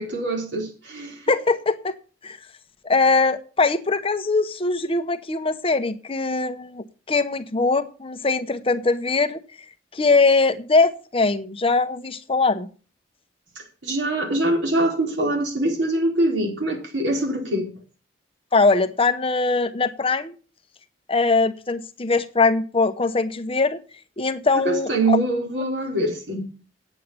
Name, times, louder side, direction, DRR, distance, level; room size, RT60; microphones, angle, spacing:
voice 1, 0.0-1.2 13.6-17.7 24.6-26.5, right 1 dB, 70° right, 4.4 m, -24 dB
voice 2, 1.3-2.0 2.2-2.4 2.8-9.4 9.9-12.7 18.5-20.3 21.1-23.8 24.2-25.2, left 3 dB, 30° left, 0.9 m, -21 dB
9.2 x 8.1 x 7.0 m
head